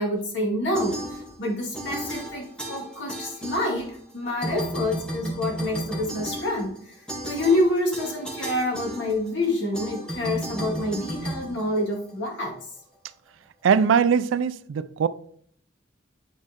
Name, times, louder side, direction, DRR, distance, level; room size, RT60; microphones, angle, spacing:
voice 1, 0.0-7.0 7.2-12.6, left 1 dB, 65° left, 2.3 m, -27 dB
sound 1, 0.7-1.5 1.7-4.1 4.4-12.3, right 1 dB, 5° left, 1.4 m, -34 dB
voice 2, 13.6-15.1, right 6 dB, 85° right, 0.4 m, -21 dB
9.2 x 4.3 x 2.9 m
head